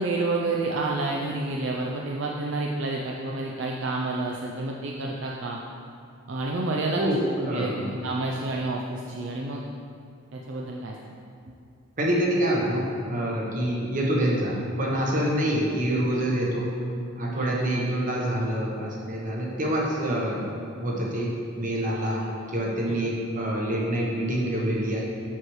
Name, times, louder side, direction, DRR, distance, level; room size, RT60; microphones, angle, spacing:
voice 1, 0.0-5.6 6.3-9.6 10.3-11.1 17.3-17.5 22.9-23.0, right 2 dB, 65° right, -1 dB, 0.5 m, -29 dB
voice 2, 7.4-7.9 12.0-16.7 17.1-20.4 20.8-25.0, right 1 dB, 40° right, -3 dB, 1.1 m, -26 dB
7.3 x 6.2 x 3.2 m, 2.4 s
head